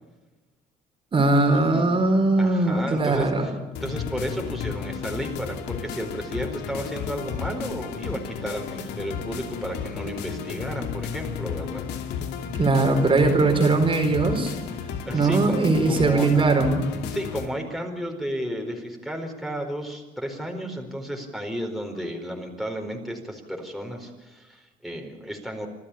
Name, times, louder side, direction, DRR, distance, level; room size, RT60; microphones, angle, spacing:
voice 1, 1.1-3.5 12.5-14.5 15.1-16.8, right 3 dB, 30° right, 4 dB, 4.3 m, -20 dB
voice 2, 2.4-3.5 3.8-11.8 15.1-15.6 15.9-16.3 17.1-25.7, equal, ahead, 2 dB, 4.5 m, -33 dB
sound 1, 3.7-17.5, left 7 dB, 85° left, 2.6 m, -33 dB
26.5 x 14.0 x 8.6 m, 1.2 s
cardioid pair, 110°, 17 cm